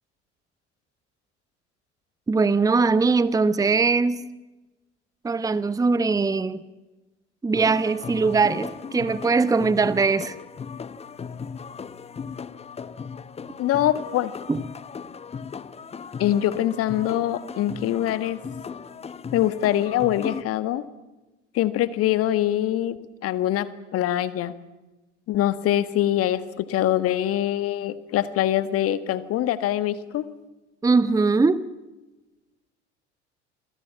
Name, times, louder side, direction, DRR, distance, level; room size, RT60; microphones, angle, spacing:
voice 1, 2.3-4.2 5.2-6.6 7.4-10.3 14.5-14.6 30.8-31.7, right 4 dB, 10° right, 1.0 m, -21 dB
sound 1, 7.5-20.4, left 6 dB, 15° left, 0.9 m, -37 dB
voice 2, 13.6-14.3 16.2-18.4 19.3-20.8 21.5-23.0 23.2-24.5 25.3-30.3, left 12 dB, 40° left, 1.6 m, -24 dB
27.5 x 22.5 x 7.1 m
figure-of-eight pair, 70°, 35 cm